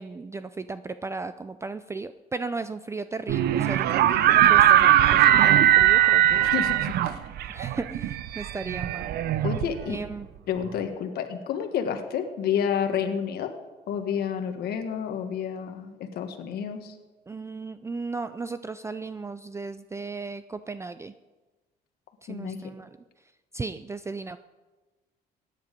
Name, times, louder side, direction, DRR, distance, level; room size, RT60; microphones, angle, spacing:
voice 1, 0.0-6.5 6.9-9.1 9.9-10.3 17.3-21.1 22.2-22.9 23.5-24.4, right 4 dB, 15° right, 12 dB, 0.4 m, -36 dB
sound 1, 3.3-10.1, right 12 dB, 70° right, 0.7 m, -20 dB
voice 2, 6.4-7.2 9.4-10.0 10.5-13.5 13.9-16.9 22.3-22.6, left 8 dB, 70° left, 6 dB, 1.5 m, -30 dB
16.5 x 9.8 x 5.2 m, 1.2 s
cardioid pair, 110°, 17 cm